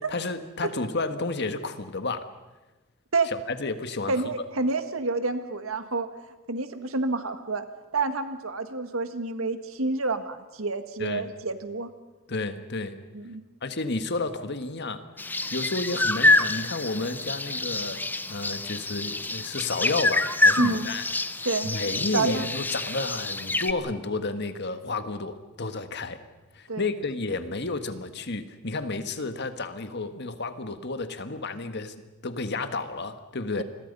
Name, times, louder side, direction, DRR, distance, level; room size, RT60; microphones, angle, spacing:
voice 1, 0.1-2.2 3.3-4.5 11.0-11.3 12.3-13.0 13.6-15.0 15.5-21.0 21.6-26.2 26.5-31.9 32.2-33.6, left 3 dB, 55° left, 9 dB, 1.6 m, -31 dB
voice 2, 4.1-6.1 6.5-7.7 7.9-11.9 13.1-13.4 20.6-20.9 21.4-21.7 22.1-22.4 26.7-26.8, right 3 dB, 90° right, 9 dB, 1.8 m, -28 dB
sound 1, 15.2-23.7, left 2 dB, 10° left, 0.7 m, -26 dB
28.5 x 22.0 x 5.5 m, 1.2 s
head